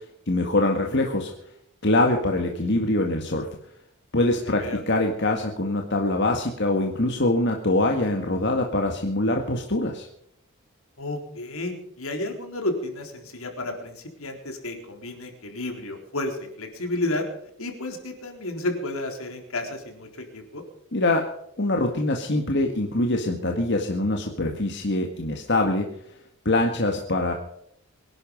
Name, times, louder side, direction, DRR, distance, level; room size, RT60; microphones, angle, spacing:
voice 1, 0.0-1.3 1.8-3.5 4.1-10.1 20.9-21.2 21.6-25.9 26.5-27.3, left 2 dB, 50° left, 2 dB, 1.9 m, -24 dB
voice 2, 4.4-4.8 11.0-17.3 17.6-20.1 20.3-20.6, left 2 dB, 75° left, 4 dB, 4.0 m, -31 dB
24.0 x 11.5 x 5.4 m, 0.74 s
head